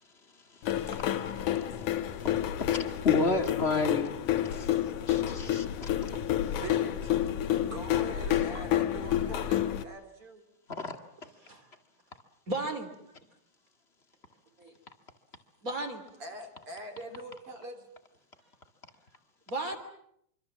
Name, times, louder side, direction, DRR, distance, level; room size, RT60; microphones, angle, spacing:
sound 1, 0.6-9.8, left 11 dB, 70° left, 2.5 m, -29 dB
voice 1, 3.0-4.2 4.5-4.7 5.1-5.9 10.8-10.9, left 4 dB, 25° left, 6 dB, 1.4 m, -30 dB
voice 2, 6.2-7.1 7.7-10.4 13.1-13.2 16.2-17.9, right 2 dB, 40° right, 4 dB, 4.1 m, -43 dB
voice 3, 12.5-12.9 14.6-14.7 15.6-16.0 19.5-19.8, right 2 dB, 25° right, 6 dB, 3.2 m, -34 dB
25.5 x 25.5 x 7.4 m, 0.72 s
omnidirectional pair, 3.9 m